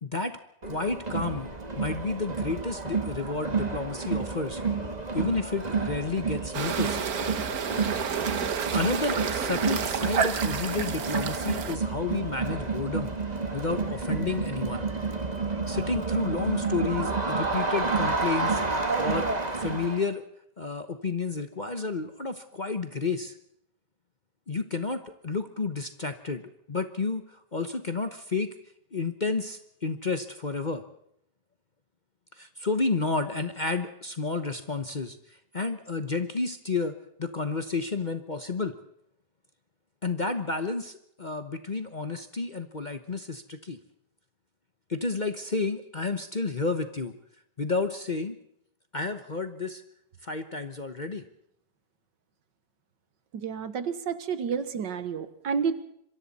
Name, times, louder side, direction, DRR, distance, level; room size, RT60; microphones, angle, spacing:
voice 1, 0.0-4.6 5.1-7.0 8.5-13.1 13.5-14.8 15.7-19.3 19.5-20.2 20.6-23.3 24.5-28.5 28.9-30.8 32.3-38.7 40.0-43.8 44.9-47.1 47.6-48.4 48.9-49.8 50.2-51.2, left 3 dB, 35° left, 8 dB, 0.9 m, -31 dB
Crowd, 0.6-20.0, right 4 dB, 25° right, 1.8 m, -30 dB
sound 1, 6.5-11.8, right 7 dB, 60° right, 1.6 m, -30 dB
voice 2, 53.3-55.8, right 6 dB, 80° right, 12 dB, 2.0 m, -30 dB
26.5 x 23.5 x 4.2 m, 0.72 s
omnidirectional pair, 1.9 m